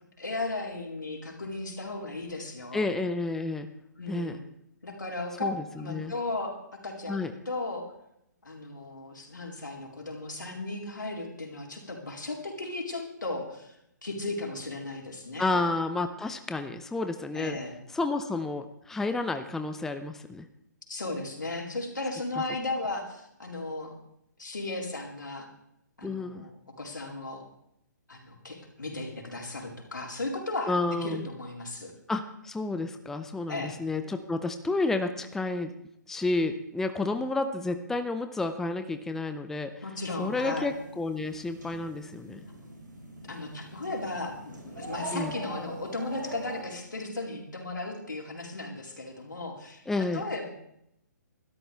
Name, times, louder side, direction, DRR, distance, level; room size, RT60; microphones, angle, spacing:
voice 1, 0.2-2.9 4.0-4.4 4.8-6.5 6.8-7.9 8.4-13.7 14.0-15.6 17.3-17.8 20.9-23.9 24.4-25.5 26.0-26.5 26.8-27.4 28.1-31.9 33.5-33.7 39.8-40.7 43.2-50.5, left 2 dB, 85° left, 0 dB, 4.0 m, -36 dB
voice 2, 2.7-3.7 4.1-4.4 5.4-6.1 7.1-7.3 15.4-17.6 17.9-20.4 26.0-26.5 30.7-31.3 32.1-35.7 36.1-39.7 40.2-42.4 45.1-45.3 49.9-50.2, left 3 dB, 5° left, 8 dB, 0.5 m, -30 dB
sound 1, 40.1-46.6, right 1 dB, 85° right, 4.2 m, -43 dB
20.0 x 12.5 x 3.4 m, 0.77 s
figure-of-eight pair, 135°, 10 cm